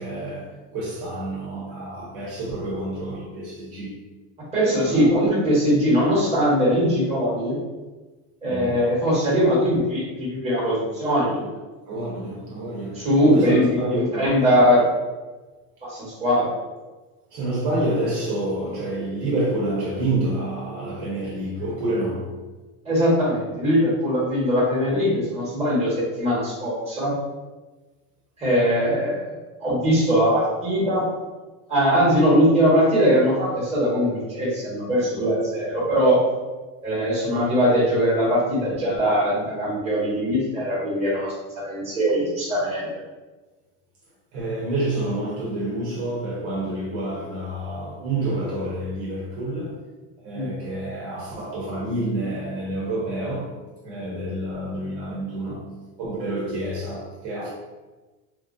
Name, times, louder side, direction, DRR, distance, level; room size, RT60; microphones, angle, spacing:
voice 1, 0.0-4.0 4.7-5.1 8.4-8.9 11.9-14.4 17.3-22.3 44.3-49.8 50.2-53.5 53.8-55.7 56.0-57.5, right 1 dB, 55° right, -5 dB, 1.0 m, -28 dB
voice 2, 4.5-7.5 8.4-11.5 12.9-13.7 14.0-14.8 15.8-16.5 22.8-27.2 28.4-29.3 29.6-31.0 31.7-36.2 36.8-42.9 50.3-50.5, equal, 15° right, -7 dB, 1.4 m, -21 dB
3.1 x 2.4 x 2.6 m, 1.2 s
supercardioid pair, 130°, 48 cm